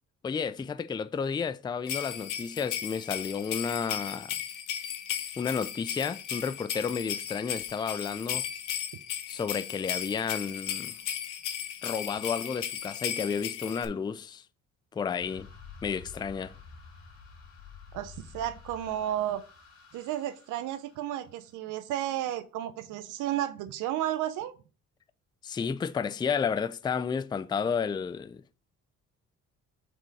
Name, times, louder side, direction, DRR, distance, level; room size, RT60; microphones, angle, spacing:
voice 1, 0.2-4.4 5.4-8.4 9.3-10.9 11.8-14.4 14.9-15.5 15.8-16.6 25.4-28.4, left 6 dB, 15° left, 0.3 m, -32 dB
sound 1, 1.9-13.9, left 9 dB, 80° left, 0.9 m, -36 dB
sound 2, 15.2-21.6, left 5 dB, 60° left, 3.1 m, -50 dB
voice 2, 17.9-19.4 19.9-24.5, right 12 dB, 85° right, 0.5 m, -32 dB
4.5 x 4.4 x 5.2 m
cardioid pair, 90°, 30 cm